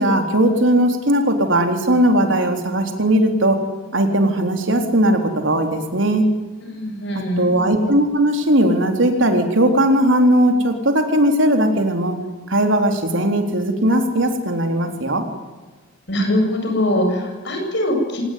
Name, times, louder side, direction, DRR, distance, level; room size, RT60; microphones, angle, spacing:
voice 1, 0.0-3.6 3.9-6.2 7.4-12.1 12.5-15.3, right 1 dB, 75° right, 5 dB, 3.9 m, -18 dB
voice 2, 6.6-7.5 16.1-18.2, left 1 dB, 60° left, 4 dB, 7.8 m, -22 dB
26.0 x 19.5 x 9.5 m, 1.3 s
head